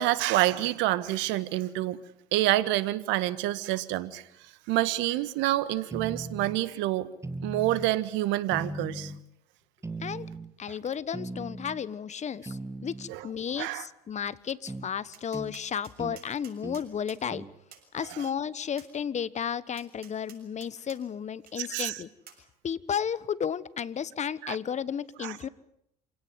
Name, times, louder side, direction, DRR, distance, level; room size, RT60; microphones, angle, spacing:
voice 1, 0.0-2.0 2.3-4.2 4.7-7.1 7.4-9.1 13.1-13.2 13.6-13.8 21.6-22.0 24.4-24.6 25.2-25.4, right 15 dB, 65° right, 16 dB, 1.6 m, -27 dB
sound 1, 5.9-6.6 7.2-7.9 8.5-9.2 9.8-10.5 11.1-11.8 12.5-13.1 14.7-14.9 15.3-15.6 16.0-16.2 16.6-16.9 17.3-17.5, right 2 dB, 15° right, 2.1 m, -38 dB
voice 2, 10.6-17.4 17.9-22.1 22.6-25.5, left 8 dB, 35° left, 18 dB, 1.3 m, -33 dB
Tap, 14.7-14.8 15.1-17.2 17.7-17.9 18.8-18.9 19.8-21.0 21.5-21.6 22.3-22.4, right 8 dB, 50° right, 6.6 m, -51 dB
27.0 x 17.5 x 9.6 m, 0.77 s
hypercardioid pair, 75°, 20 cm